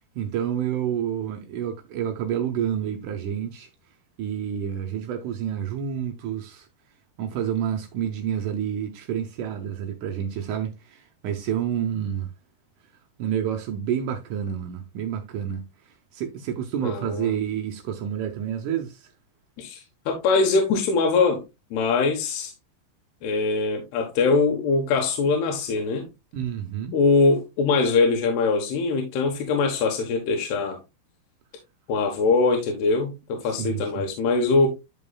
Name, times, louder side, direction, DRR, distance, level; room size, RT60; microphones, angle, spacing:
voice 1, 0.2-3.7 4.2-6.7 7.2-12.3 13.2-19.1 26.3-27.0 33.4-34.0, right 9 dB, 90° right, 1.8 m, -29 dB
voice 2, 16.8-17.3 19.6-21.4 21.7-22.5 23.2-26.1 26.9-30.8 31.9-34.7, left 4 dB, 80° left, 3.2 m, -22 dB
10.5 x 5.4 x 2.3 m
omnidirectional pair, 4.7 m